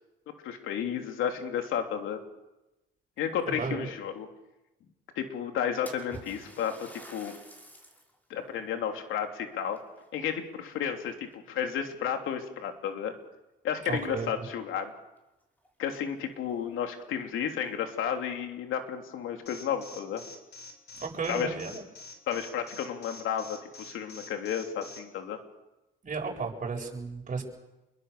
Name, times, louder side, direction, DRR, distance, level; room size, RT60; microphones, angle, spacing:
voice 1, 0.4-2.2 3.2-4.3 5.2-7.3 8.3-9.8 10.1-13.1 13.6-14.9 15.8-20.2 21.3-21.5 22.3-25.4, left 8 dB, 85° left, 5 dB, 3.3 m, -32 dB
voice 2, 3.4-3.8 13.8-14.5 21.0-21.8 26.0-27.4, right 4 dB, 40° right, 1 dB, 7.6 m, -34 dB
Splash splatter, 5.9-8.2 8.6-8.7 9.7-10.7 11.1-11.5 12.3-12.4 12.9-13.0 15.2-15.3 15.6-15.7 16.2-16.3 16.7-16.8 17.6-18.1, right 1 dB, 10° left, 6.3 m, -49 dB
Alarm, 19.5-25.0, left 3 dB, 55° left, 5.9 m, -46 dB
29.0 x 22.5 x 6.9 m, 0.99 s
cardioid pair, 90°, 20 cm